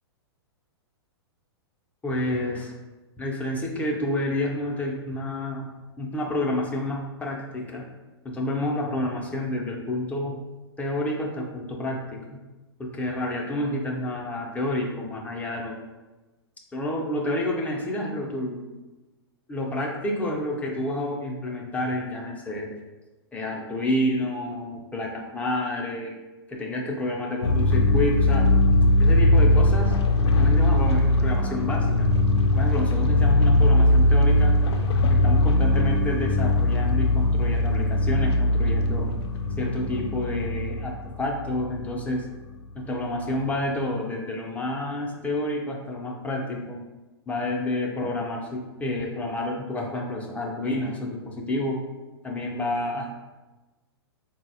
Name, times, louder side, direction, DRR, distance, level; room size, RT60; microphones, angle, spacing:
voice 1, 2.0-2.7 3.2-7.9 8.2-10.4 10.8-12.4 12.8-15.8 16.7-18.6 19.5-22.7 23.3-26.1 26.5-28.5 29.0-29.9 30.4-32.1 32.5-34.6 35.1-39.1 39.6-42.3 42.7-46.8 47.3-51.8 52.2-53.1, left 1 dB, 10° left, -1 dB, 0.4 m, -29 dB
sound 1, 27.4-42.0 43.3-43.4, left 1 dB, 80° left, 0.4 m, -20 dB
3.9 x 2.0 x 2.7 m, 1.2 s
hypercardioid pair, 130°, 14 cm